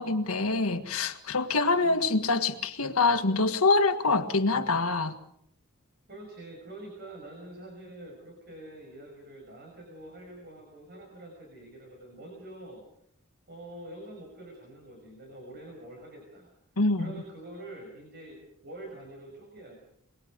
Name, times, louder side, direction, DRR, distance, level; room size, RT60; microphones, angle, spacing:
voice 1, 0.0-5.2 16.8-17.1, left 3 dB, 75° left, 1.7 m, -25 dB
voice 2, 6.1-12.9 13.5-16.5 17.0-19.7, right 1 dB, 45° right, 5.8 m, -46 dB
25.5 x 22.5 x 5.2 m
head